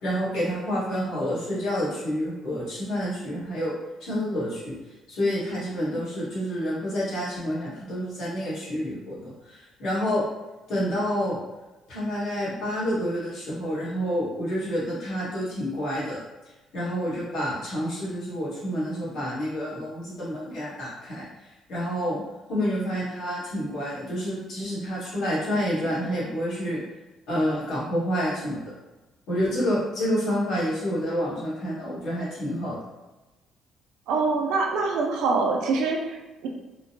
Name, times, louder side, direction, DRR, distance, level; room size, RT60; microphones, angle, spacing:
voice 1, 0.0-3.7 4.0-4.7 5.1-10.2 10.7-11.4 11.9-16.2 16.7-21.3 21.7-22.2 22.5-26.8 27.3-28.7 29.3-32.8, equal, 60° left, -8 dB, 1.5 m, -28 dB
voice 2, 34.1-36.5, right 4 dB, 85° right, 0 dB, 0.5 m, -25 dB
3.7 x 2.2 x 2.7 m, 1.1 s
cardioid pair, 170°, 0 cm